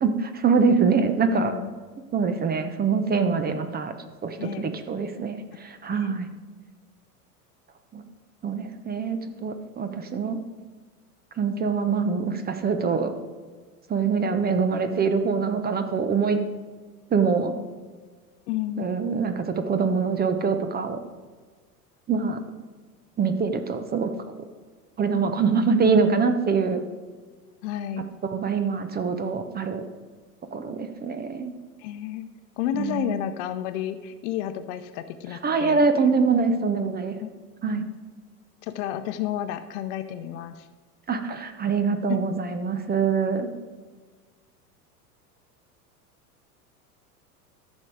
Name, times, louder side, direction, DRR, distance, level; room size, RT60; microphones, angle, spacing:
voice 1, 0.0-1.5 2.1-3.9 4.2-6.3 7.9-8.0 8.4-10.4 11.4-13.1 13.9-16.4 17.1-17.5 18.8-21.0 22.1-22.4 23.2-24.1 25.0-26.8 28.2-29.8 30.5-31.5 32.7-33.2 35.4-37.2 37.6-37.8 41.1-43.5, right 5 dB, 20° right, 8 dB, 0.8 m, -24 dB
voice 2, 1.3-1.7 3.2-3.6 4.4-4.6 5.9-6.1 18.5-19.0 27.6-28.0 31.8-32.3 32.6-35.8 37.2-37.3 37.6-37.9 38.6-40.7 42.1-42.2, left 11 dB, 50° left, 11 dB, 0.8 m, -31 dB
14.0 x 6.3 x 4.7 m, 1.5 s
figure-of-eight pair, 85°, 46 cm